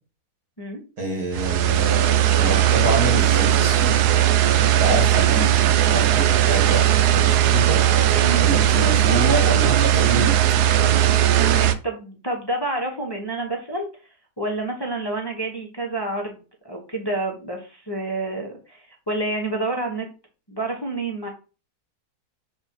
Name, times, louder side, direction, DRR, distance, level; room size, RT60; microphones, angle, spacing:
voice 1, 1.0-4.0 4.5-7.8 8.4-10.4, right 1 dB, 65° right, 1 dB, 2.5 m, -27 dB
sound 1, 1.3-11.7, right 11 dB, 85° right, 1.1 m, -18 dB
voice 2, 11.3-13.8 14.4-20.1 20.5-21.3, right 2 dB, 20° left, 0 dB, 1.0 m, -28 dB
7.0 x 2.9 x 4.6 m, 0.33 s
omnidirectional pair, 1.7 m